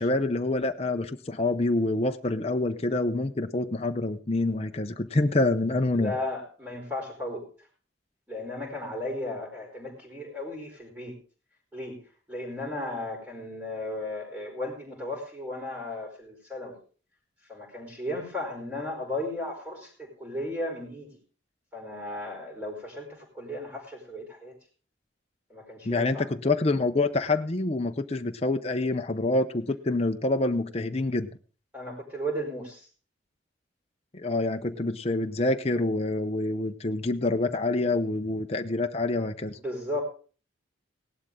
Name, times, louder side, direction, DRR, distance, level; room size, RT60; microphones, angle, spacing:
voice 1, 0.0-6.1 25.8-31.3 34.1-39.6, left 2 dB, 30° left, 6 dB, 0.7 m, -26 dB
voice 2, 5.9-7.5 8.3-11.2 11.7-12.0 12.3-16.8 17.5-21.2 21.7-24.5 25.5-26.2 31.7-32.9 39.5-40.0, left 1 dB, 10° right, -1 dB, 4.2 m, -35 dB
17.5 x 12.0 x 3.7 m, 0.39 s
head